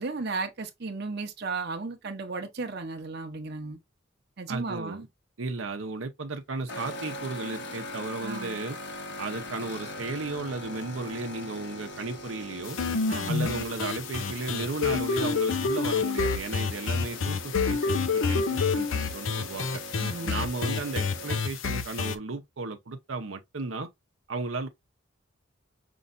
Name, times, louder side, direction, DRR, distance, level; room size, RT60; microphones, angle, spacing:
voice 1, 0.0-3.8 4.4-5.1 8.2-8.6 13.1-13.5 20.0-20.4, right 3 dB, 55° right, 0.8 m, -35 dB
voice 2, 4.5-5.1 5.4-8.8 9.2-12.8 13.3-19.8 20.2-23.9 24.3-24.7, right 3 dB, 90° right, 0.8 m, -35 dB
sound 1, 6.7-21.4, left 1 dB, 65° left, 1.1 m, -41 dB
sound 2, 12.7-22.2, left 5 dB, 90° left, 0.7 m, -28 dB
5.5 x 3.0 x 2.5 m
head